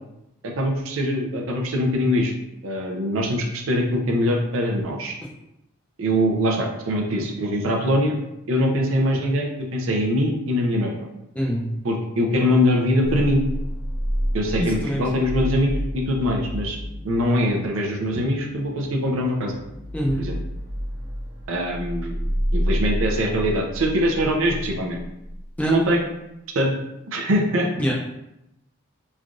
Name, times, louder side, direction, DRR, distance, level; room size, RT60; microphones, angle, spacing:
voice 1, 0.4-2.3 2.6-5.2 6.0-8.2 8.5-10.9 11.8-13.4 14.3-16.8 17.0-19.6 20.2-20.4 21.5-25.0 25.7-26.0 26.5-26.7 27.1-27.7, equal, 70° right, 1 dB, 0.5 m, -23 dB
voice 2, 11.3-11.7 14.6-15.1 19.9-20.2 25.6-25.7 27.8-27.9, equal, 5° left, -4 dB, 0.4 m, -24 dB
sound 1, 13.0-25.7, equal, 50° right, 1.0 m, -30 dB
3.2 x 2.4 x 2.5 m, 0.87 s
head